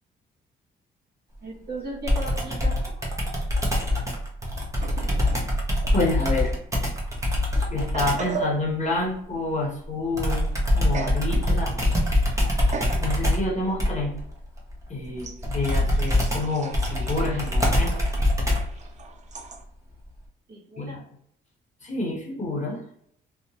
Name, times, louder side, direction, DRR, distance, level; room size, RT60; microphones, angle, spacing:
voice 1, 1.4-3.2 20.5-21.1, right 1 dB, 50° right, -3 dB, 1.4 m, -37 dB
Computer keyboard, 2.1-8.3 10.2-18.8, left 1 dB, 15° right, 0.8 m, -24 dB
sound 1, 4.8-5.5 5.8-5.9 6.8-6.9 7.5-8.7 10.9-11.3 11.7-12.1 12.7-13.1 13.6-13.8 15.2-19.6, right 4 dB, 35° right, 0.4 m, -37 dB
voice 2, 5.9-6.5 7.7-12.3 13.0-14.1 14.9-17.9 20.8-21.0 21.8-22.8, left 2 dB, 35° left, -1 dB, 0.9 m, -28 dB
2.9 x 2.1 x 2.7 m, 0.68 s
cardioid pair, 90°, 20 cm